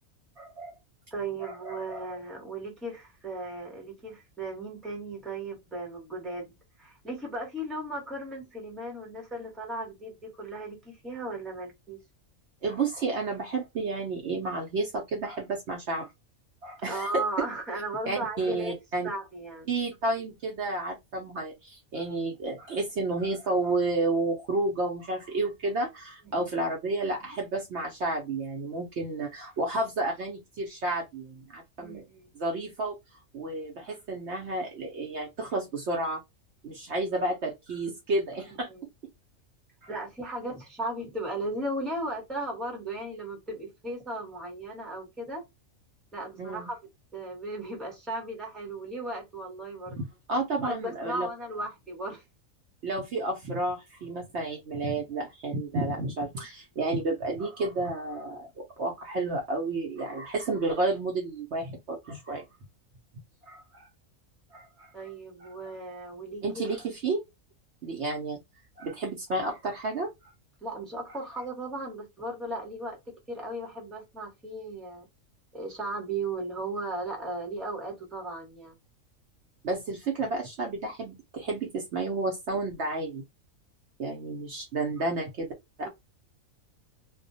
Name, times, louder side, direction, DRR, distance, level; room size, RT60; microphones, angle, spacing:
voice 1, 0.4-0.7 1.4-2.0 12.6-16.1 16.6-17.5 18.1-19.1 19.7-32.0 32.3-33.0 33.3-36.2 36.6-38.7 39.8-39.9 46.4-46.7 50.0-51.3 52.8-62.4 63.5-63.9 64.5-64.9 65.4-65.5 66.4-67.2 67.8-68.4 68.8-70.1 79.6-83.2 84.0-85.5 85.8-85.9, right 2 dB, 60° right, 0.8 m, -31 dB
voice 2, 1.1-12.0 16.9-18.7 19.0-19.7 26.2-26.4 31.8-32.3 38.7-38.8 39.9-45.4 46.1-46.8 47.1-50.0 50.6-52.2 64.9-66.7 70.6-75.1 75.5-78.7, right 2 dB, ahead, 0.8 m, -36 dB
2.3 x 2.2 x 2.6 m
omnidirectional pair, 1.4 m